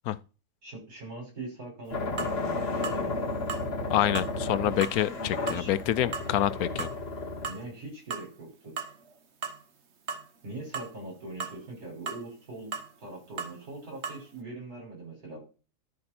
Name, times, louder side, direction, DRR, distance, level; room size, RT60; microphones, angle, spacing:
voice 1, 0.6-3.3 5.2-5.7 7.5-8.7 10.4-12.7 13.0-15.4, right 2 dB, 90° right, 5.8 m, -42 dB
sound 1, 1.9-7.5, left 3 dB, 45° left, 1.8 m, -33 dB
sound 2, 2.2-2.4 2.8-3.0 3.5-3.7 4.2-4.3 4.8-5.0 5.5-5.7 6.1-6.3 6.8-7.0 7.4-7.6 8.1-8.3 8.8-9.1 9.4-9.6 10.1-10.3 10.7-10.9 11.4-11.6 12.1-12.2 12.7-12.9 13.4-13.5 14.0-14.2, right 6 dB, 50° right, 1.2 m, -36 dB
voice 2, 3.9-6.9, left 12 dB, 80° left, 1.1 m, -27 dB
13.0 x 4.8 x 4.3 m
omnidirectional pair, 1.5 m